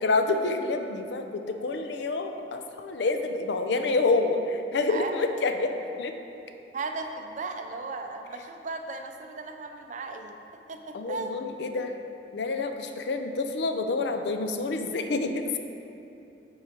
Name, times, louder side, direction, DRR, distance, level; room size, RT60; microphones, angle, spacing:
voice 1, 0.0-5.7 6.0-6.1 10.9-11.9 12.3-15.6, left 3 dB, 70° left, 6 dB, 0.5 m, -28 dB
voice 2, 4.9-5.2 6.7-10.4 10.7-11.3, right 3 dB, 40° right, 5 dB, 0.5 m, -36 dB
7.8 x 4.8 x 4.4 m, 2.9 s
head